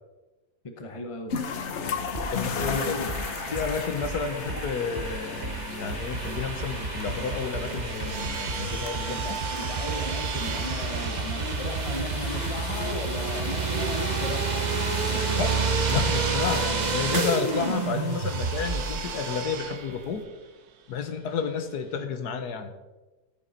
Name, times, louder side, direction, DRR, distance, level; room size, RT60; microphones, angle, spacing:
voice 1, 0.6-1.3 2.6-3.1 9.0-14.7 15.1-15.6, left 2 dB, 35° left, 5 dB, 0.5 m, -36 dB
sound 1, 1.3-20.2, left 6 dB, 50° left, 1.0 m, -37 dB
sound 2, 2.1-19.0, right 4 dB, 35° right, 0.8 m, -30 dB
voice 2, 2.3-3.1 3.5-9.2 15.3-15.5 15.9-20.2 20.9-22.7, left 5 dB, 70° left, 8 dB, 1.5 m, -31 dB
sound 3, 7.8-22.0, right 7 dB, 65° right, 1.3 m, -39 dB
13.5 x 7.6 x 4.0 m, 1.2 s
omnidirectional pair, 1.8 m